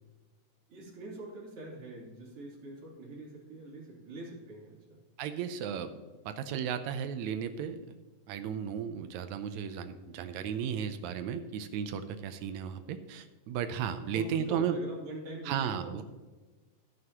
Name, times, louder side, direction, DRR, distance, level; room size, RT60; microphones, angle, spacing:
voice 1, 0.7-5.0 14.1-16.0, right 2 dB, 40° right, -4 dB, 3.8 m, -43 dB
voice 2, 5.2-5.9 6.2-7.8 8.3-14.8 15.4-16.0, right 8 dB, 85° right, 9 dB, 1.6 m, -34 dB
13.5 x 9.4 x 2.9 m, 1.3 s
omnidirectional pair, 4.0 m